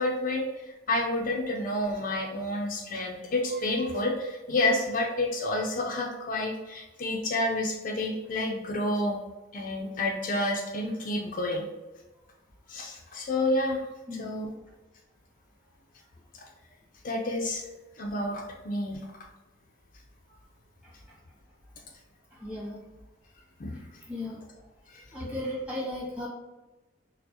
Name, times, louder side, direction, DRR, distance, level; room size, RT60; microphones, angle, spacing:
voice 1, 0.0-9.2 9.5-11.7 12.7-13.8 14.2-14.5 16.3-16.4 17.0-17.6 18.0-19.1 23.6-23.9 24.9-25.0, left 1 dB, 50° left, 0 dB, 0.4 m, -29 dB
voice 2, 22.3-22.8 24.1-24.4 25.1-26.3, left 1 dB, 10° right, -7 dB, 1.3 m, -35 dB
4.4 x 2.0 x 2.7 m, 1.1 s
head